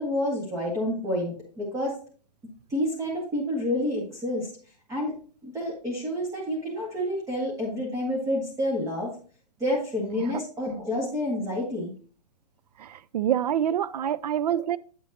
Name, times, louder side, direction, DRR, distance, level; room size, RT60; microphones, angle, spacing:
voice 1, 0.0-1.9 2.7-4.5 4.9-5.2 5.4-9.1 9.6-11.9 13.8-13.9 14.5-14.6, left 1 dB, 15° right, 2.0 m, -29 dB
voice 2, 12.8-14.8, right 10 dB, 75° right, 0.5 m, -26 dB
8.4 x 7.1 x 2.8 m
hypercardioid pair, 135°, 21 cm